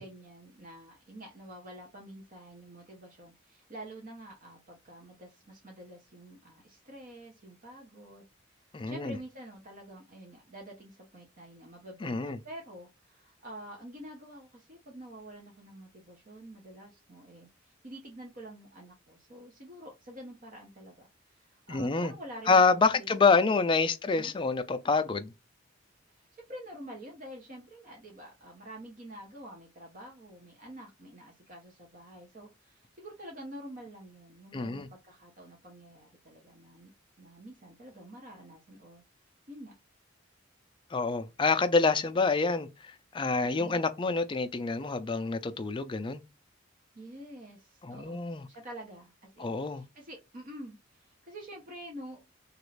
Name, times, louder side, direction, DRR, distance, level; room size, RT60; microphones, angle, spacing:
voice 1, 0.0-8.2 8.6-23.1 23.4-23.5 24.1-24.3 26.1-39.0 39.5-39.7 43.4-43.8 46.9-52.4, right 1 dB, 40° right, 0.7 m, -48 dB
voice 2, 8.7-9.2 12.0-12.4 21.7-22.1 22.5-25.3 34.5-34.9 40.9-46.2 47.8-48.5 49.4-49.8, left 4 dB, 25° left, 0.3 m, -27 dB
3.0 x 2.4 x 3.1 m
head